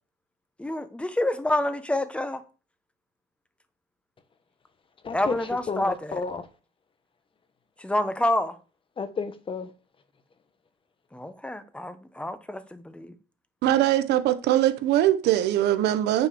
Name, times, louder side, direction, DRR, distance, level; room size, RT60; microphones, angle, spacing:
voice 1, 0.6-2.4 5.1-6.1 7.8-8.6 11.1-13.1, left 1 dB, 5° left, 1.1 m, -28 dB
voice 2, 5.0-6.5 9.0-9.7, left 4 dB, 30° left, 1.3 m, -32 dB
voice 3, 13.6-16.3, right 13 dB, 80° right, 1.1 m, -22 dB
9.2 x 4.5 x 7.0 m
cardioid pair, 110°, 17 cm